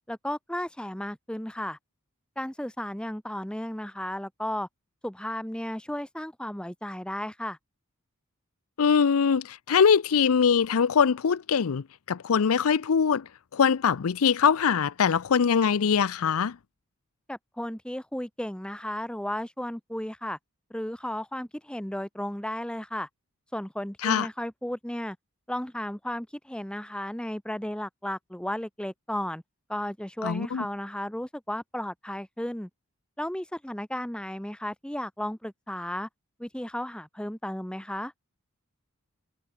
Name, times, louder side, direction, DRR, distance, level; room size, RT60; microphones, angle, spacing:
voice 1, 0.1-1.8 2.4-4.7 5.0-7.6 17.3-20.4 20.7-23.1 23.5-25.2 25.5-29.4 29.7-32.7 33.2-36.1 36.4-38.1, left 1 dB, 5° left, 1.0 m, -34 dB
voice 2, 8.8-16.6 24.0-24.3 30.2-30.7, left 6 dB, 75° left, 0.5 m, -23 dB
head